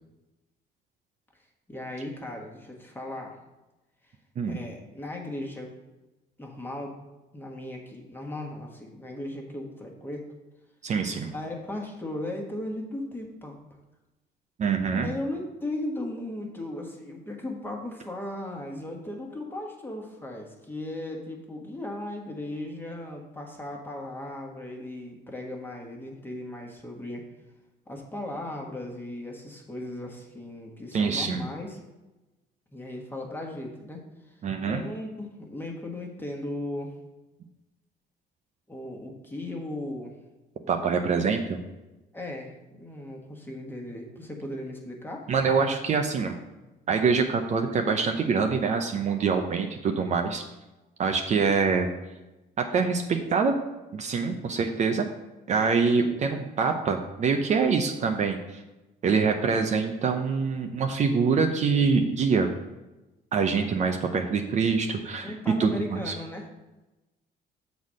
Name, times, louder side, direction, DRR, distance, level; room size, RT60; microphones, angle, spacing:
voice 1, 1.7-3.4 4.0-4.1 4.5-5.7 6.4-6.9 7.3-10.3 11.3-13.6 15.0-27.2 27.9-31.8 32.7-36.9 38.7-40.1 42.1-45.3 65.2-66.5, left 1 dB, 10° left, 0 dB, 1.5 m, -37 dB
voice 2, 10.8-11.3 14.6-15.1 30.9-31.4 34.4-34.8 40.7-41.6 45.3-46.4 46.9-50.4 51.0-51.9 52.6-53.6 53.9-55.1 55.5-58.6 59.0-62.5 63.3-65.3 65.6-66.1, right 5 dB, 45° right, 5 dB, 0.7 m, -25 dB
7.0 x 4.1 x 6.3 m, 1.1 s
cardioid pair, 110°, 17 cm